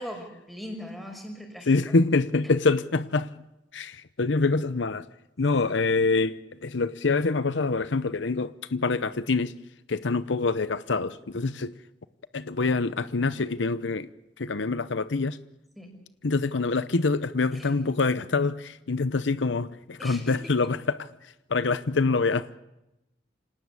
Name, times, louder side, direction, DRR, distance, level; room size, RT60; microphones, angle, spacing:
voice 1, 0.0-1.7 15.8-15.9 17.5-17.7 20.0-20.5, equal, ahead, 5.6 m, -40 dB
voice 2, 1.7-3.3 3.7-5.1 5.4-9.5 9.9-11.8 12.3-14.1 14.4-15.4 16.2-22.6, left 3 dB, 80° left, 0.8 m, -25 dB
27.0 x 18.5 x 8.2 m
head